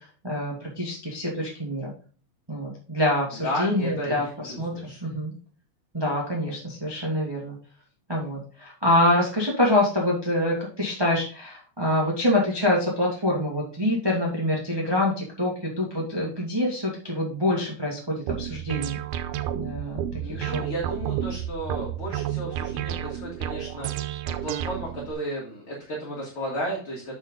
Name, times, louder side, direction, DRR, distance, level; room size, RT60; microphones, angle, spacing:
voice 1, 0.2-1.9 2.5-4.7 5.0-5.3 5.9-7.5 8.1-19.0 19.5-20.0 20.3-20.6, left 1 dB, 10° right, -4 dB, 1.3 m, -25 dB
voice 2, 3.4-5.0 20.2-27.1, equal, 45° left, -4 dB, 2.7 m, -33 dB
sound 1, 18.3-25.1, right 11 dB, 90° right, 2.1 m, -31 dB
7.6 x 5.7 x 3.8 m, 0.40 s
omnidirectional pair, 3.5 m